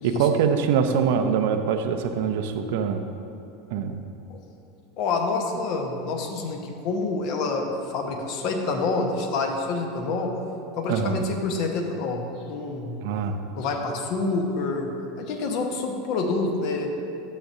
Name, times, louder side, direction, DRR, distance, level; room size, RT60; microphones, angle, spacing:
voice 1, 0.0-3.0 3.7-4.0 10.9-11.2 13.0-13.4, right 7 dB, 60° right, 7 dB, 0.6 m, -23 dB
voice 2, 5.0-10.3 10.8-12.9 13.5-14.9 15.2-16.9, left 3 dB, 55° left, 3 dB, 1.1 m, -27 dB
12.0 x 7.6 x 2.7 m, 2.9 s
figure-of-eight pair, 80°, 0 cm